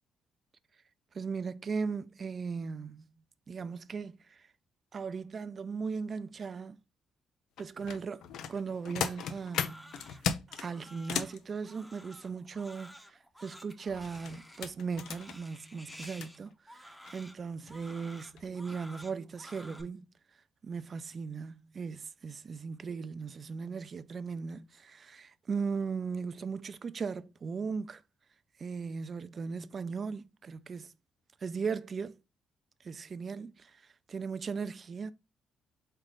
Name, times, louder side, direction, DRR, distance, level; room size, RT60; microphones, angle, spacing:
voice 1, 1.1-3.1 3.5-4.5 4.9-6.8 7.6-10.0 10.5-20.1 20.6-28.0 28.6-30.9 31.4-32.2 32.8-35.1, right 5 dB, 45° right, 0.4 m, -38 dB
sound 1, 7.6-11.4 13.9-16.3 17.0-17.1 17.6-17.8 18.2-18.5 18.8-18.9, left 8 dB, 80° left, 0.5 m, -37 dB
Crying sobbing, 9.0-19.8, equal, 5° left, 0.8 m, -52 dB
4.1 x 3.3 x 3.7 m
cardioid pair, 90°, 0 cm